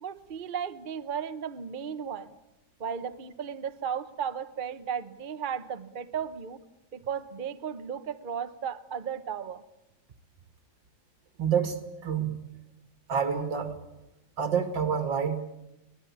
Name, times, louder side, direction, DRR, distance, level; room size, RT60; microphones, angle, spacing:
voice 1, 0.0-2.3 2.8-6.6 6.9-9.6, right 7 dB, 35° right, 10 dB, 0.9 m, -35 dB
voice 2, 11.4-12.3 13.1-13.7 14.4-15.4, right 7 dB, 80° right, 8 dB, 2.9 m, -28 dB
23.5 x 19.5 x 8.6 m, 0.90 s
omnidirectional pair, 2.0 m